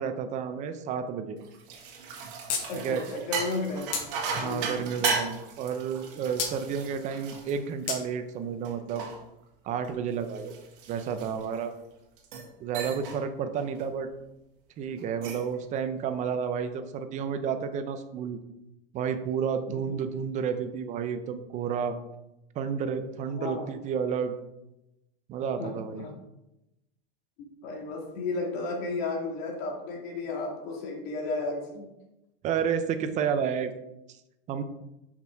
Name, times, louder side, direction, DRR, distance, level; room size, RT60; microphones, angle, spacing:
voice 1, 0.0-1.4 2.8-3.0 4.3-9.0 9.7-10.5 10.9-11.7 12.6-14.1 14.8-18.4 18.9-22.0 22.5-24.3 25.3-26.0 32.4-33.7 34.5-34.6, right 7 dB, 25° right, 9 dB, 0.6 m, -31 dB
sound 1, 1.4-8.2 8.6-11.7 12.2-12.5 12.7-13.2 13.6-13.8 15.0-15.5, right 5 dB, 60° right, 1.9 m, -36 dB
sound 2, 2.5-2.6 2.9-3.0 3.9-4.1 4.7-5.2 6.4-6.5 7.9-8.0, left 6 dB, 70° left, 1.7 m, -30 dB
voice 2, 2.7-3.9 4.4-4.9 23.4-23.7 25.4-25.7 26.0-26.1 27.6-31.9, left 3 dB, 55° left, 0 dB, 2.3 m, -33 dB
6.1 x 5.9 x 4.6 m, 0.92 s
supercardioid pair, 145°, 30 cm